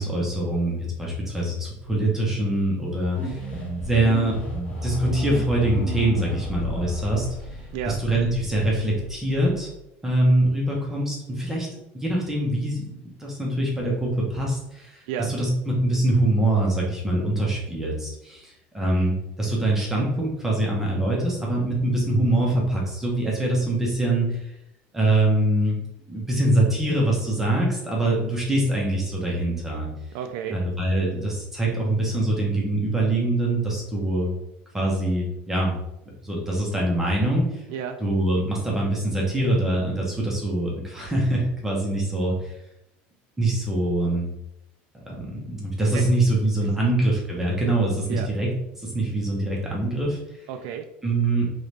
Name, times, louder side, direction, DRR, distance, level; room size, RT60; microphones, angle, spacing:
voice 1, 0.0-3.5 3.8-4.4 4.8-7.3 7.9-9.7 10.0-11.7 11.9-12.9 13.2-24.5 24.9-25.8 26.1-29.9 30.5-34.3 34.7-35.7 36.2-37.6 38.0-42.5 43.4-44.3 44.9-50.2 51.0-51.5, right 1 dB, 10° right, -3 dB, 0.8 m, -24 dB
sound 1, 3.1-9.8, left 1 dB, 30° left, 0.9 m, -33 dB
voice 2, 30.1-30.6 37.7-38.0 45.9-46.1 46.6-46.8 48.1-48.3 50.5-50.9, right 8 dB, 70° right, 8 dB, 0.3 m, -32 dB
3.9 x 3.0 x 3.3 m, 0.84 s
cardioid pair, 160°, 5 cm